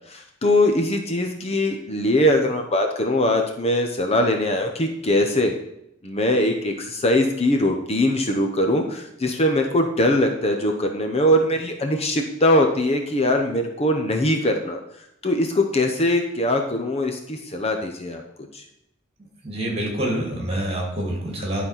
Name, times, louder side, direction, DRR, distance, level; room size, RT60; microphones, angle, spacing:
voice 1, 0.0-5.5 6.0-14.8 15.2-18.2 18.5-18.6, left 1 dB, 30° left, 4 dB, 0.8 m, -21 dB
voice 2, 19.4-21.7, right 1 dB, 30° right, 0 dB, 2.6 m, -26 dB
11.5 x 4.2 x 5.8 m, 0.78 s
head